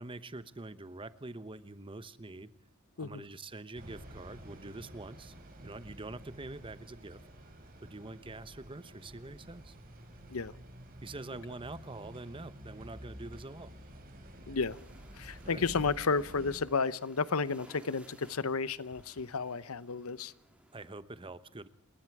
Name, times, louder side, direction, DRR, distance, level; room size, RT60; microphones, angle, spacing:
voice 1, 0.0-2.5 3.0-5.3 5.6-7.2 7.8-9.8 11.0-13.7 15.4-15.7 20.7-21.7, right 2 dB, 25° right, 14 dB, 1.0 m, -45 dB
sound 1, 3.7-16.6, equal, 45° right, 6.5 m, -50 dB
voice 2, 14.5-14.8 15.2-20.3, left 4 dB, 80° left, 17 dB, 0.8 m, -32 dB
sound 2, 14.7-20.9, right 1 dB, 5° right, 3.0 m, -61 dB
28.5 x 20.5 x 4.8 m, 0.63 s
head